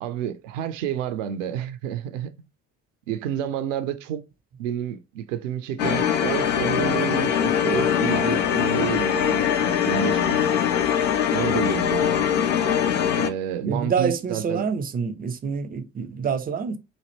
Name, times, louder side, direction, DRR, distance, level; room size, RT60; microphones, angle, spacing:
voice 1, 0.0-2.3 3.1-4.2 4.6-10.5 11.3-12.1 13.2-14.7, right 9 dB, 75° right, 0.5 m, -29 dB
sound 1, 5.8-13.3, left 8 dB, 75° left, 0.6 m, -22 dB
voice 2, 13.6-16.8, right 6 dB, 25° right, 0.5 m, -27 dB
4.0 x 2.5 x 3.2 m
figure-of-eight pair, 50°, 39 cm